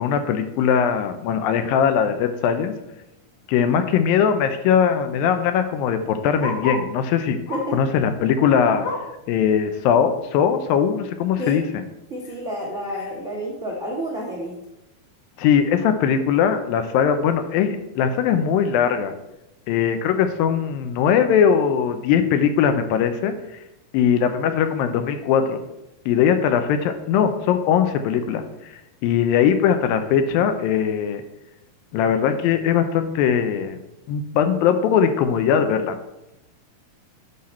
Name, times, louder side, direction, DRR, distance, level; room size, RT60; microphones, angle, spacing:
voice 1, 0.0-2.7 3.5-7.4 7.7-8.9 9.3-11.8 15.4-19.1 19.7-23.3 23.9-25.6 26.1-28.4 29.0-31.2 31.9-33.8 34.1-36.0, left 7 dB, 80° left, 8 dB, 2.3 m, -20 dB
Bark, 3.2-3.5 3.8-3.9 4.1-7.0 7.4-7.9 8.2-9.2 9.7-9.8 10.2-10.3 11.0-11.1, left 3 dB, 60° left, 1.7 m, -33 dB
voice 2, 12.1-14.6, equal, 85° right, -4 dB, 0.6 m, -29 dB
8.6 x 5.7 x 4.3 m, 0.88 s
omnidirectional pair, 4.3 m